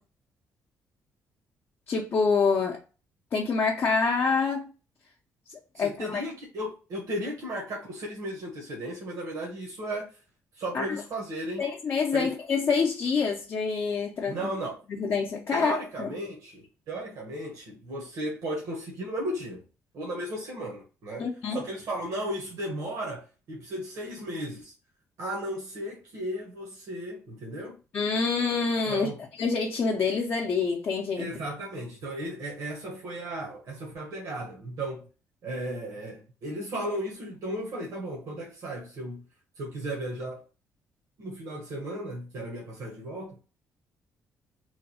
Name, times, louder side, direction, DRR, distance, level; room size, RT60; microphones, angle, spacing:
voice 1, 1.9-2.8 3.3-4.7 5.8-6.2 10.7-10.9 11.6-14.4 14.9-16.1 21.2-21.6 27.9-29.1 29.4-31.3, left 5 dB, 40° left, 0.6 m, -26 dB
voice 2, 5.7-10.1 10.6-11.6 12.1-12.3 14.3-14.8 15.5-19.6 19.9-24.7 25.2-27.8 28.9-29.2 31.2-35.1 35.4-39.2 39.6-40.4 41.2-43.4, right 1 dB, 65° right, 1.0 m, -35 dB
3.2 x 2.3 x 4.1 m
cardioid pair, 155°, 6 cm